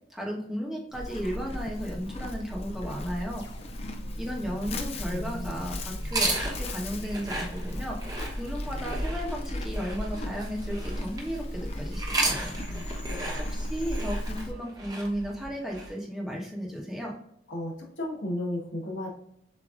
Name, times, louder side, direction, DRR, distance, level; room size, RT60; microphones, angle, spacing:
voice 1, 0.1-3.4 4.2-8.0 8.4-12.6 13.5-17.1, equal, 5° right, -3 dB, 1.1 m, -34 dB
Livestock farm animals working animals, 0.9-14.5, left 1 dB, 35° left, 0.5 m, -35 dB
sound 1, 3.3-14.1, left 1 dB, 70° left, 1.5 m, -51 dB
voice 2, 5.1-5.7 12.6-13.7 17.5-19.1, left 1 dB, 90° left, -2 dB, 1.6 m, -36 dB
sound 2, 6.0-11.4 11.9-15.9, right 2 dB, 20° right, 0.9 m, -34 dB
7.0 x 2.9 x 2.5 m, 0.70 s
head